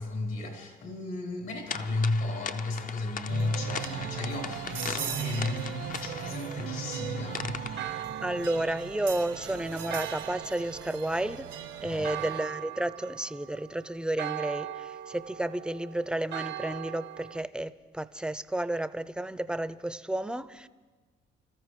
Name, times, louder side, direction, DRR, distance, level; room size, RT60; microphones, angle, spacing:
voice 1, 0.0-7.7 11.8-12.2, left 2 dB, 75° left, 3.8 m, -33 dB
sound 1, 1.7-8.0, left 6 dB, 45° left, 0.6 m, -40 dB
sound 2, 3.3-12.4, right 9 dB, 90° right, 1.2 m, -38 dB
Church bell, 7.8-17.4, right 12 dB, 65° right, 0.5 m, -40 dB
voice 2, 8.2-11.5 11.8-20.7, right 1 dB, 5° right, 0.5 m, -32 dB
29.0 x 13.5 x 3.2 m
cardioid pair, 90°, 20 cm